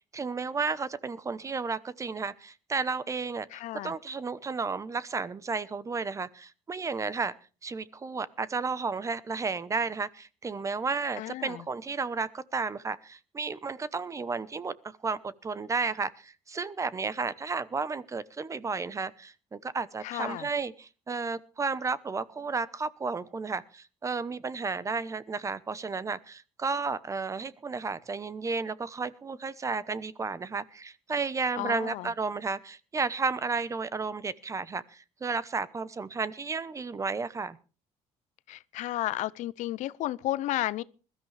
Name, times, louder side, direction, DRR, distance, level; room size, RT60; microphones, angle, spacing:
voice 1, 0.1-7.3 7.6-37.6, right 4 dB, 25° right, 0.9 m, -33 dB
voice 2, 3.5-3.9 11.2-11.7 20.0-20.5 31.6-32.1 38.5-40.8, left 15 dB, 75° left, 0.7 m, -33 dB
21.0 x 13.5 x 3.3 m
cardioid pair, 115°, 13 cm